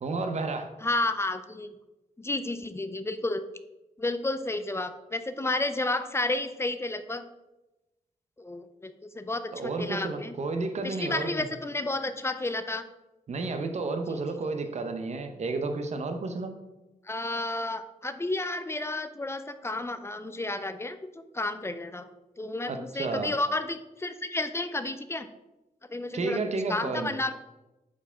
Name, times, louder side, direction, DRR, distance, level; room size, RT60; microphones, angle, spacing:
voice 1, 0.0-0.7 9.5-11.5 13.3-16.5 22.7-23.3 26.1-27.1, right 3 dB, 50° right, 6 dB, 0.8 m, -31 dB
voice 2, 0.8-1.7 2.2-3.4 4.0-7.2 8.4-10.3 10.8-12.8 14.1-14.2 17.1-22.1 22.4-25.3 25.9-26.4 26.7-27.3, left 2 dB, 15° left, 11 dB, 0.5 m, -31 dB
4.8 x 4.4 x 5.6 m, 1.0 s
cardioid pair, 85°, 15 cm